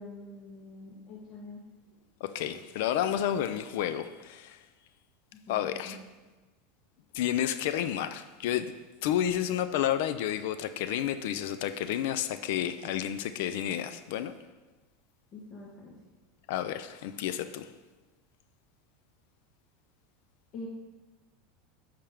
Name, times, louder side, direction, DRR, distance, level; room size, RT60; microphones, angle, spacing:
voice 1, 0.0-1.6 5.3-6.0 15.3-15.9 20.5-20.7, left 2 dB, 40° left, -4 dB, 1.2 m, -45 dB
voice 2, 2.2-4.6 5.5-6.0 7.1-8.7 9.0-14.3 16.5-17.7, left 11 dB, 70° left, 12 dB, 0.4 m, -31 dB
8.6 x 5.0 x 3.5 m, 1.2 s
supercardioid pair, 145°, 0 cm